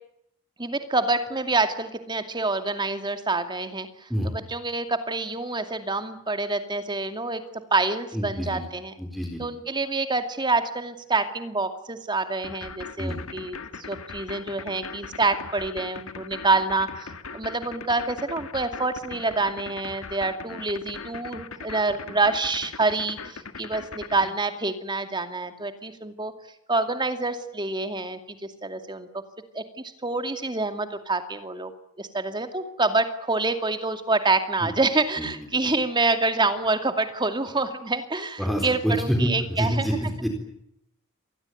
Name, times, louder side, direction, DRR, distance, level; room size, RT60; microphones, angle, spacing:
voice 1, 0.6-7.4 7.7-8.9 9.4-26.3 26.7-29.2 29.5-31.7 32.0-39.9, right 3 dB, 20° right, 8 dB, 2.4 m, -27 dB
voice 2, 8.1-8.6 9.0-9.4 13.0-13.3 34.6-34.7 35.2-35.3 38.4-39.3 39.6-40.3, equal, ahead, 2 dB, 4.0 m, -26 dB
sound 1, 12.4-24.3, left 4 dB, 65° left, 1.8 m, -39 dB
26.5 x 20.0 x 9.4 m, 0.77 s
head